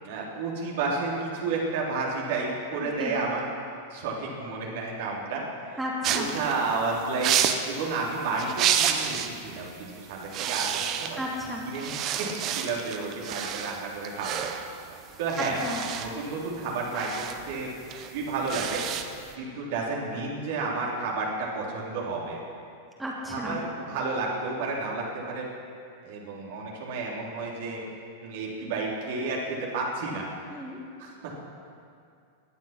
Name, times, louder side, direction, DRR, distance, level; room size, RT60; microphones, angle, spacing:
voice 1, 0.0-3.5 3.9-5.8 6.1-7.4 7.6-11.2 11.7-11.9 12.2-14.4 15.2-17.7 18.1-18.8 19.4-22.4 23.3-25.5 26.0-27.8 28.2-30.3 31.0-31.3, right 3 dB, 50° right, -3 dB, 3.4 m, -31 dB
voice 2, 2.8-3.2 5.8-6.3 11.2-11.6 15.6-15.8 23.0-23.6 30.5-30.8, equal, 5° right, -4 dB, 3.0 m, -33 dB
sound 1, 6.0-9.4 9.7-9.9 10.2-11.4 11.7-19.3, right 9 dB, 35° right, 1.1 m, -30 dB
19.0 x 11.5 x 5.9 m, 2.4 s
figure-of-eight pair, 90°, 0 cm